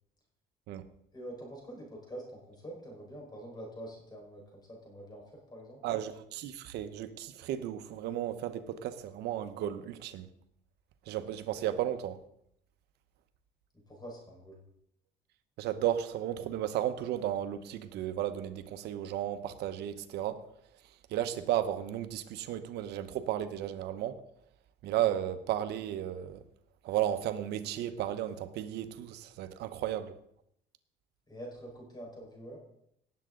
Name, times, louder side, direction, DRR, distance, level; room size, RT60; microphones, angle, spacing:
voice 1, 1.1-5.8 13.9-14.6 31.3-32.6, right 1 dB, 25° left, 4.7 m, -46 dB
voice 2, 5.8-10.3 11.1-12.2 15.6-20.4 21.1-24.2 24.8-26.4 26.8-30.1, right 11 dB, 80° right, 1.0 m, -34 dB
18.0 x 7.9 x 3.8 m
cardioid pair, 110°, 17 cm